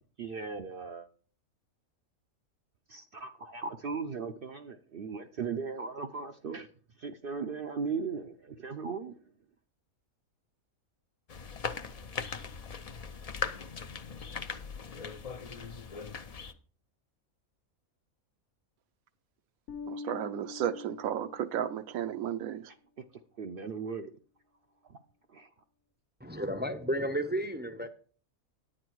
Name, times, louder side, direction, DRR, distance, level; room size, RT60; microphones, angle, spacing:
voice 1, 0.2-1.1 2.9-6.7 7.0-9.1 23.4-24.1 24.9-25.0 25.3-25.5, right 5 dB, 60° right, 0.6 m, -37 dB
sound 1, 11.3-16.5, left 5 dB, 50° left, 0.4 m, -39 dB
Bass guitar, 19.7-22.1, left 4 dB, 80° left, 1.4 m, -44 dB
voice 2, 19.9-22.7, right 10 dB, 80° right, 1.1 m, -33 dB
voice 3, 26.2-27.9, right 1 dB, 15° right, 0.3 m, -32 dB
9.6 x 8.8 x 4.6 m
omnidirectional pair, 1.5 m